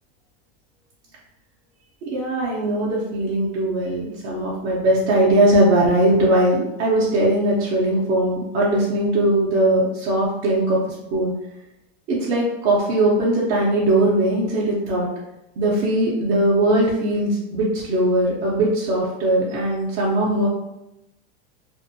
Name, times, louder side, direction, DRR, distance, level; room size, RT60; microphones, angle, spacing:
voice 1, 2.0-11.3 12.1-15.1 15.6-20.5, right 1 dB, 40° right, -6 dB, 0.6 m, -20 dB
2.6 x 2.1 x 2.6 m, 0.88 s
supercardioid pair, 155°, 32 cm